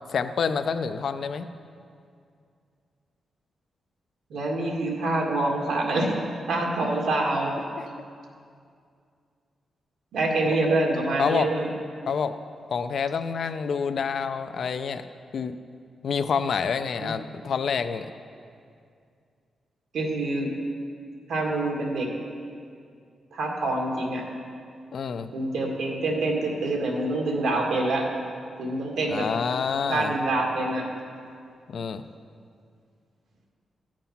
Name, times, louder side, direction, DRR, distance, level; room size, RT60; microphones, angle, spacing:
voice 1, 0.1-1.5 11.2-11.5 12.1-12.3 12.7-15.1 15.3-15.6 16.0-18.1 24.9-25.3 29.1-30.1 31.7-32.0, left 6 dB, 60° left, 10 dB, 0.5 m, -27 dB
voice 2, 4.3-6.1 6.5-7.6 10.1-11.7 17.0-17.1 19.9-20.5 21.3-22.1 23.3-24.2 25.3-28.1 28.6-29.3 29.9-30.8, right 2 dB, 85° right, -1 dB, 2.0 m, -26 dB
13.5 x 7.5 x 5.7 m, 2.3 s
wide cardioid pair, 125°, 0 cm